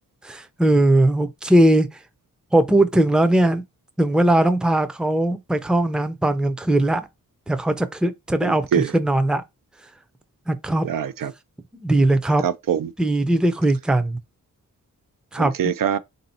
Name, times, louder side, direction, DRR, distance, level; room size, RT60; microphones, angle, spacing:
voice 1, 0.2-1.9 2.5-3.6 4.0-7.1 7.5-9.4 10.5-10.9 11.7-12.4 13.0-14.2 15.3-15.5, right 1 dB, ahead, 0.5 m, -19 dB
voice 2, 8.4-8.9 10.8-11.3 12.4-12.9 15.4-16.0, right 8 dB, 75° right, 0.5 m, -23 dB
3.8 x 2.7 x 4.2 m
wide cardioid pair, 90°, 34 cm